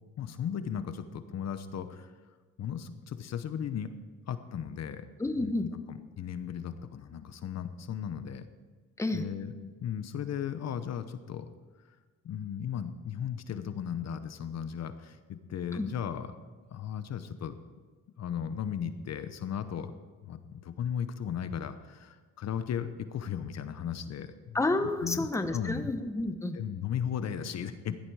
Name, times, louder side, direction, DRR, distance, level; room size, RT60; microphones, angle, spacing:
voice 1, 0.2-2.1 2.6-3.9 4.3-5.1 5.4-5.5 5.9-8.4 9.1-11.5 12.2-16.3 16.7-17.6 18.2-19.9 20.2-24.6 25.0-25.3 25.5-25.9 26.5-28.0, left 8 dB, 55° left, 10 dB, 0.9 m, -36 dB
voice 2, 5.2-5.7 9.0-9.2 15.7-15.9 24.5-26.6, left 2 dB, 10° left, 8 dB, 1.0 m, -30 dB
16.0 x 12.5 x 4.8 m, 1.4 s
cardioid pair, 105°, 31 cm